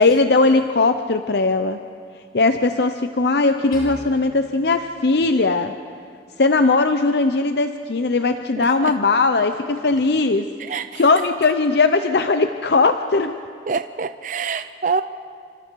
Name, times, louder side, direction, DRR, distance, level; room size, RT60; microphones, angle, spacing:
voice 1, 0.0-1.8 2.3-5.7 6.4-13.4, left 3 dB, 70° left, 8 dB, 0.7 m, -19 dB
sound 1, 3.7-6.1, equal, 50° left, 5.4 m, -42 dB
voice 2, 8.6-8.9 10.6-11.0 13.7-15.0, right 5 dB, 45° right, 10 dB, 0.5 m, -26 dB
28.5 x 25.5 x 4.7 m, 2.2 s
head